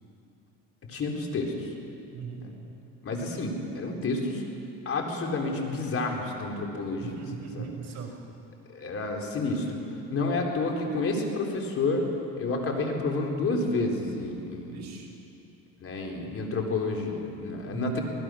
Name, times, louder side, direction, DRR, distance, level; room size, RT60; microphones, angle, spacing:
voice 1, 0.9-1.7 3.0-4.4 4.9-7.2 7.5-7.7 8.7-9.8 10.1-12.0 12.4-14.8 15.8-18.0, left 3 dB, 40° left, 1 dB, 4.0 m, -29 dB
voice 2, 2.1-2.5 7.0-8.2 14.6-15.1 17.7-18.0, right 6 dB, 50° right, 3 dB, 5.3 m, -39 dB
24.5 x 19.5 x 6.4 m, 2.8 s
supercardioid pair, 110°, 34 cm